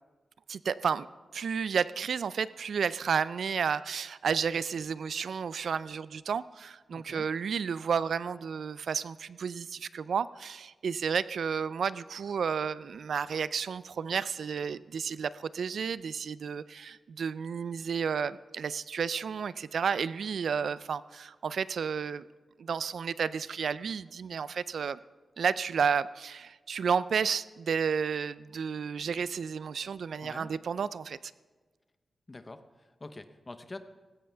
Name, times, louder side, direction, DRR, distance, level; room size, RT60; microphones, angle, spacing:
voice 1, 0.5-1.1 1.3-22.2 22.6-25.0 25.4-31.3, right 6 dB, 70° right, 17 dB, 0.4 m, -32 dB
voice 2, 6.9-7.3 30.2-30.5 32.3-33.8, left 2 dB, 25° left, 9 dB, 0.8 m, -45 dB
19.5 x 16.5 x 3.4 m, 1.3 s
wide cardioid pair, 170°, 0 cm